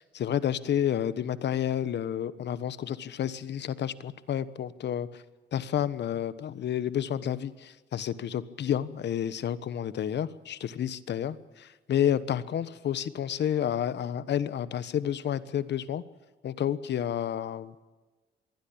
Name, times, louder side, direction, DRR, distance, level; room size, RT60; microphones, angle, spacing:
voice 1, 0.0-5.1 5.5-16.0 16.4-17.8, left 10 dB, 60° left, 15 dB, 1.2 m, -30 dB
23.0 x 16.0 x 8.8 m, 1.3 s
cardioid pair, 90°, 20 cm